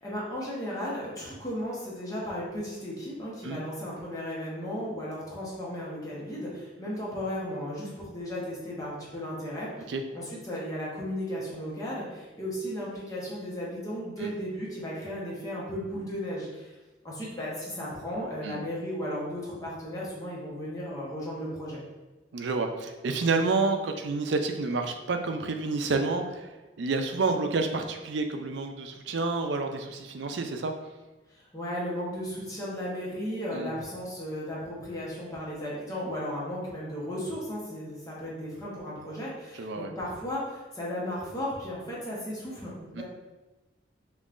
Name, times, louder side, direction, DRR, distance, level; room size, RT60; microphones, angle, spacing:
voice 1, 0.0-9.7 10.1-16.8 17.0-21.8 31.3-43.0, equal, 20° left, -6 dB, 0.9 m, -35 dB
voice 2, 22.3-30.7 33.5-33.7 39.6-39.9 43.0-43.1, right 3 dB, 70° right, 5 dB, 0.4 m, -29 dB
5.3 x 3.1 x 2.5 m, 1.1 s
head